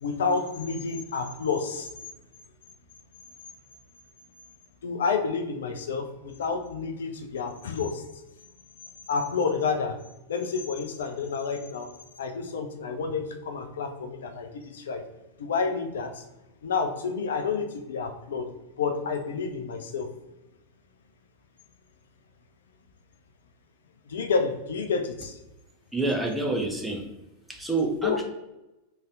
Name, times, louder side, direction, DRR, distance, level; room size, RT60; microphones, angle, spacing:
voice 1, 0.0-1.9 4.8-8.0 9.1-10.0 10.3-11.9 12.2-15.0 15.4-16.2 16.6-18.5 18.8-20.1 24.1-25.4 28.0-28.2, left 5 dB, 65° left, 7 dB, 0.5 m, -29 dB
voice 2, 25.9-27.2 27.5-28.2, right 2 dB, 5° right, 1 dB, 0.7 m, -28 dB
3.4 x 2.6 x 3.7 m, 0.99 s
figure-of-eight pair, 90°, 0 cm